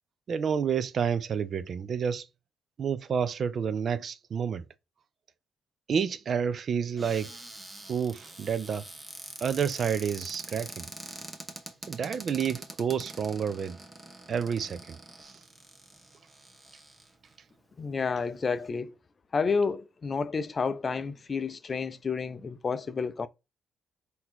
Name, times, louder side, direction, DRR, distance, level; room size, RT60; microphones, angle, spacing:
voice 1, 0.3-2.3 2.8-4.6 5.9-7.4 7.9-8.8 9.4-10.9 11.9-13.8 14.3-15.3, right 7 dB, 55° right, 0.4 m, -29 dB
Cupboard open or close, 7.0-17.3 18.0-18.1 18.3-18.7, right 2 dB, 20° right, 1.0 m, -45 dB
voice 2, 17.8-18.9 19.3-23.3, left 5 dB, 35° left, 0.4 m, -30 dB
3.9 x 2.7 x 4.4 m
cardioid pair, 90°, 0 cm